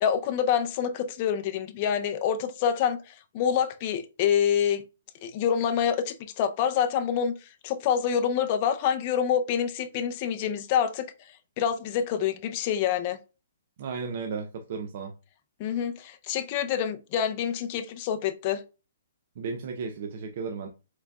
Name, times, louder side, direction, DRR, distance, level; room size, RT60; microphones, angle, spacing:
voice 1, 0.0-4.8 5.2-7.3 7.6-11.1 11.6-13.2 15.6-18.6, left 8 dB, 30° left, 0.5 m, -26 dB
voice 2, 13.8-15.1 19.4-20.7, right 5 dB, 45° right, 0.5 m, -34 dB
4.5 x 4.0 x 2.3 m
hypercardioid pair, 165°, 0 cm